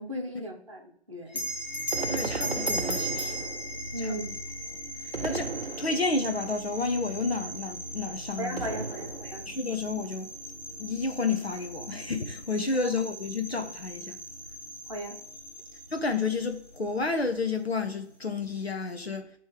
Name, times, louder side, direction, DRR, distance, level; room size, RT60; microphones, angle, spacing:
voice 1, 0.0-1.4 3.9-4.3 8.4-9.4 14.9-15.2, equal, 30° right, 0.9 m, -36 dB
Bell, 1.3-6.2, equal, 40° left, 1.0 m, -35 dB
sound 1, 1.3-18.7, right 1 dB, 5° right, 1.6 m, -42 dB
sound 2, 1.9-3.9 5.1-6.3 8.6-9.5, right 4 dB, 60° right, 0.5 m, -35 dB
voice 2, 2.1-3.5 4.0-4.2 5.0-8.6 9.5-10.3 10.8-14.2 15.9-19.4, left 4 dB, 65° left, 0.9 m, -31 dB
7.9 x 3.1 x 4.9 m
figure-of-eight pair, 170°, 34 cm